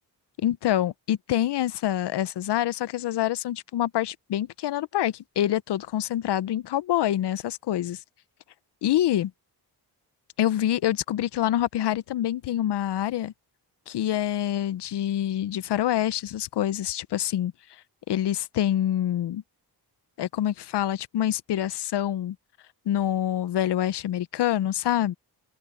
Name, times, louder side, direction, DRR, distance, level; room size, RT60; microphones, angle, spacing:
voice 1, 0.4-8.0 8.8-9.3 10.4-13.3 13.9-17.5 18.1-19.4 20.2-22.4 22.9-25.1, left 12 dB, 85° left, 0.7 m, -26 dB
open air
wide cardioid pair, 150°, 40 cm